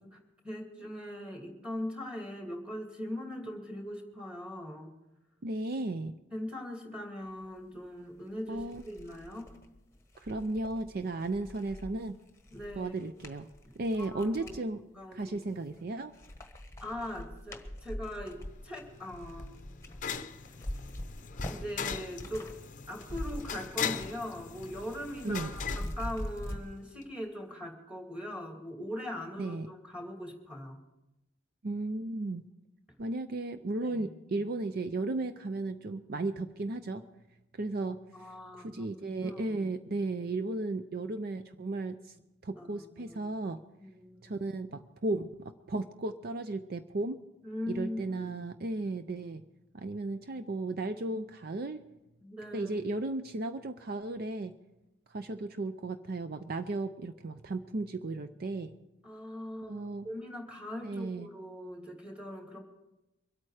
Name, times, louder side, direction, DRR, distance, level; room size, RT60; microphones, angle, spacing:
voice 1, 0.4-4.9 6.3-9.5 12.5-12.9 13.6-14.6 14.9-15.5 16.8-19.5 21.4-22.5 22.9-30.8 33.8-34.4 38.1-39.8 42.6-43.5 43.8-44.3 47.4-48.5 52.2-52.8 59.0-62.6, left 1 dB, 5° right, 1 dB, 2.5 m, -41 dB
voice 2, 5.4-6.1 8.5-8.8 10.2-12.1 12.8-13.5 13.8-14.8 15.1-16.1 25.2-25.5 29.4-29.7 31.6-32.4 33.0-37.1 37.6-38.3 38.6-42.1 42.4-43.6 44.2-47.2 47.7-49.4 49.7-51.8 52.5-54.5 55.1-58.7 59.6-60.1 60.8-61.3, right 2 dB, 50° right, 9 dB, 0.5 m, -35 dB
sound 1, 8.0-8.1 8.5-14.6 15.2-15.8 16.1-22.6 22.8-24.2 24.5-26.6, left 1 dB, 15° left, 1.3 m, -43 dB
sound 2, 18.5-26.8, left 6 dB, 40° left, 0.7 m, -40 dB
24.0 x 8.8 x 4.9 m, 0.96 s
head